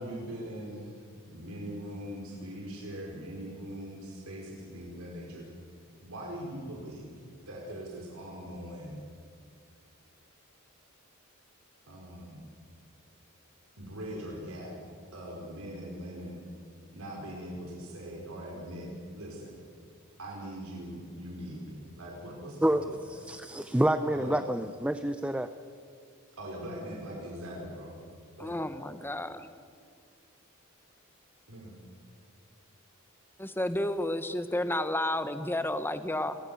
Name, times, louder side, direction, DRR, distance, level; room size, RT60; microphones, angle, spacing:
voice 1, 0.0-5.5 6.0-7.1 7.5-9.0 11.9-12.5 13.8-14.7 15.1-16.4 16.9-19.6 20.2-23.2 24.1-24.4 26.4-28.0 28.4-28.8 31.5-31.8, equal, 70° right, -2 dB, 4.9 m, -41 dB
voice 2, 22.6-25.5, right 1 dB, 5° right, 10 dB, 0.6 m, -28 dB
voice 3, 28.4-29.5 33.4-36.4, left 1 dB, 10° left, 10 dB, 1.2 m, -31 dB
30.0 x 22.0 x 7.0 m, 2.2 s
head